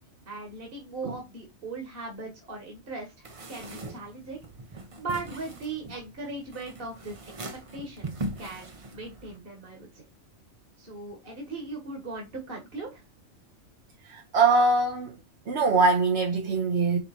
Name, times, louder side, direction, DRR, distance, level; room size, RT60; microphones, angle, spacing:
voice 1, 0.3-4.4 4.7-7.2 7.7-8.1 8.4-10.0 10.8-13.0, right 3 dB, 50° right, 1.8 m, -38 dB
sound 1, 3.2-9.4, right 2 dB, 35° right, 0.7 m, -40 dB
voice 2, 14.1-15.1 15.5-17.0, right 3 dB, 65° right, 1.2 m, -22 dB
5.2 x 4.3 x 4.3 m
omnidirectional pair, 1.2 m